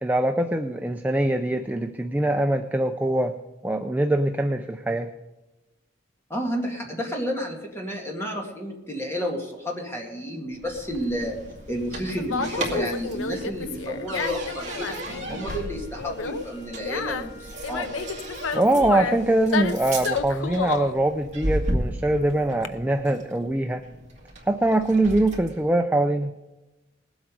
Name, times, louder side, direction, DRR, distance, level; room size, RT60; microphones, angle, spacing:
voice 1, 0.0-3.3 3.6-5.1 18.5-23.8 24.5-26.3, right 1 dB, 10° right, 5 dB, 0.4 m, -23 dB
voice 2, 6.3-11.4 11.7-15.0 15.3-17.9, equal, 15° left, 0 dB, 2.0 m, -31 dB
sound 1, 10.5-25.6, right 1 dB, 35° right, 2.2 m, -35 dB
Conversation, 10.7-22.7, left 5 dB, 85° left, 0.7 m, -32 dB
Wind instrument woodwind instrument, 13.8-18.7, right 2 dB, 55° left, 6.2 m, -49 dB
20.0 x 8.0 x 5.2 m, 1.1 s
head